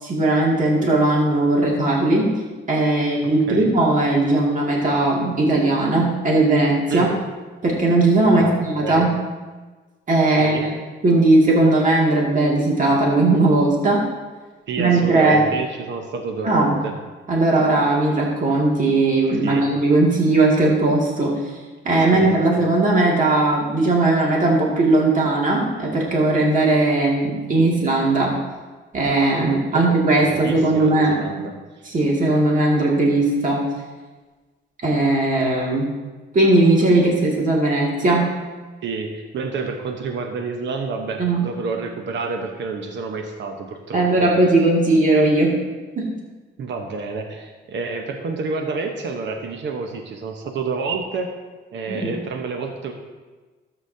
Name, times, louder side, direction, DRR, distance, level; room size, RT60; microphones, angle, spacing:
voice 1, 0.0-2.3 2.7-7.1 7.6-9.1 10.1-10.7 11.0-14.0 14.8-15.4 16.4-16.8 17.3-21.3 21.8-28.3 28.9-31.2 31.8-33.6 34.8-35.9 36.3-38.3 41.2-41.4 43.9-45.5 46.0-46.1 51.9-52.2, right 2 dB, 40° right, -3 dB, 2.2 m, -18 dB
voice 2, 8.3-9.1 10.4-10.7 14.7-17.0 19.4-19.7 22.0-22.6 29.8-31.5 38.8-44.3 46.6-51.3 51.7-52.9, right 4 dB, 65° right, 4 dB, 1.0 m, -29 dB
13.0 x 8.2 x 2.8 m, 1.3 s
cardioid pair, 90°, 20 cm